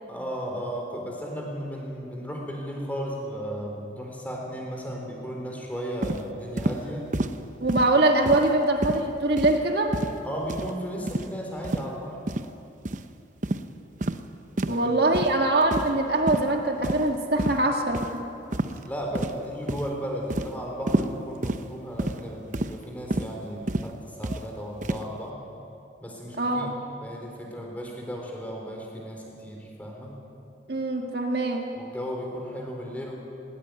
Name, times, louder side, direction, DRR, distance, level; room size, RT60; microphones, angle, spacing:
voice 1, 0.1-7.1 10.2-12.2 14.6-14.9 18.8-25.4 26.0-30.2 31.8-33.1, equal, 10° left, 0 dB, 4.0 m, -35 dB
sound 1, 6.0-6.2 6.6-6.8 7.1-7.4 7.7-7.9 8.3-8.5 8.8-9.0 9.4-9.6 9.9-10.2 10.5-10.7 11.1-11.3 11.6-11.9 12.3-12.5 12.8-13.0 13.4-13.6 14.0-14.2 14.6-14.8 15.1-15.3 15.7-16.0 16.3-16.5 16.8-17.1 17.4-17.6 17.9-18.1 18.5-18.8 19.1-19.4 19.7-19.9 20.3-20.5 20.9-21.1 21.4-21.6 22.0-22.2 22.5-22.8 23.1-23.3 23.7-23.9 24.2-24.4 24.8-25.0, right 1 dB, 45° right, 0.8 m, -28 dB
voice 2, 7.6-10.0 14.7-18.2 26.4-26.7 30.7-31.7, right 2 dB, 60° right, 2 dB, 1.7 m, -23 dB
19.5 x 19.0 x 9.3 m, 2.7 s
head